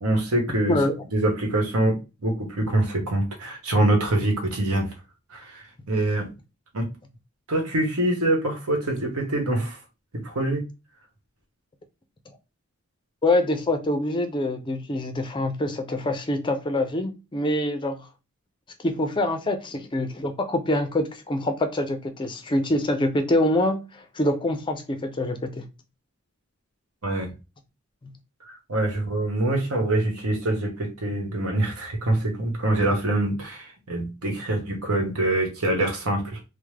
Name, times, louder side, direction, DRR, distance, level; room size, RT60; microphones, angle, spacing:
voice 1, 0.0-0.8 1.1-4.9 5.3-6.3 6.7-6.9 7.5-9.8 10.2-10.6 27.0-27.3 28.4-36.4, right 1 dB, 85° right, 1.1 m, -25 dB
voice 2, 13.2-18.1 18.8-25.6, left 1 dB, 20° left, 0.4 m, -25 dB
3.3 x 2.0 x 3.2 m
head